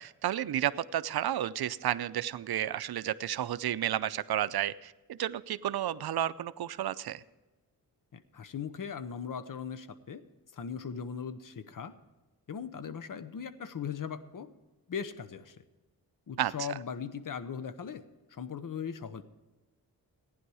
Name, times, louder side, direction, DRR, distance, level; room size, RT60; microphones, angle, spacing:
voice 1, 0.0-7.2 16.4-16.7, right 11 dB, 75° right, 16 dB, 0.6 m, -32 dB
voice 2, 8.1-10.2 10.5-11.9 12.5-14.5 14.9-15.6 16.3-18.0 18.3-19.2, left 7 dB, 60° left, 11 dB, 0.9 m, -39 dB
15.5 x 10.0 x 4.8 m, 1.2 s
wide cardioid pair, 80°, 38 cm